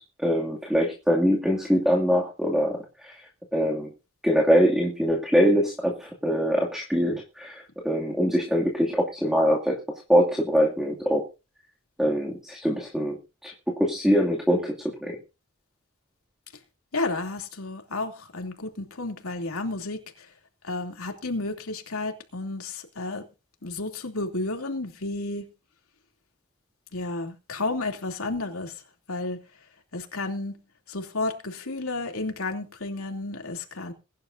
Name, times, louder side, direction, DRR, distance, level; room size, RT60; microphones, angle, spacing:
voice 1, 0.0-3.1 3.5-3.9 4.2-9.8 10.1-11.3 12.0-15.2, equal, 5° right, 2.4 m, -23 dB
voice 2, 16.9-20.0 20.7-23.2 23.6-25.4 26.9-28.7 29.1-29.4 29.9-30.6 30.9-33.9, left 2 dB, 85° left, 2.9 m, -32 dB
22.5 x 11.0 x 2.7 m
head